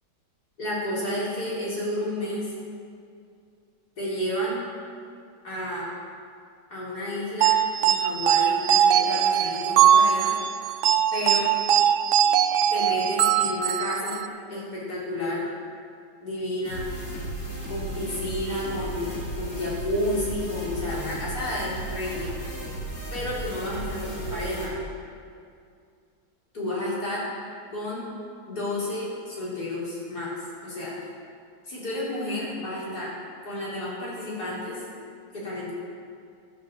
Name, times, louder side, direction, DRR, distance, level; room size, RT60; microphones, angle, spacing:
voice 1, 0.6-2.5 4.0-4.6 5.4-5.9 6.7-7.5 7.8-10.3 11.1-11.5 12.7-14.2 14.5-15.4 16.2-16.9 17.7-22.3 23.1-24.7 26.5-27.3 27.7-28.1 28.5-30.3 30.6-30.9 31.7-33.1 33.4-34.8 35.3-35.7, left 1 dB, 65° left, -8 dB, 4.7 m, -31 dB
sound 1, 7.4-14.3, right 9 dB, 85° right, 0.6 m, -21 dB
sound 2, 16.6-24.6, right 1 dB, 90° left, 3.5 m, -35 dB
12.5 x 8.8 x 7.3 m, 2.3 s
omnidirectional pair, 1.8 m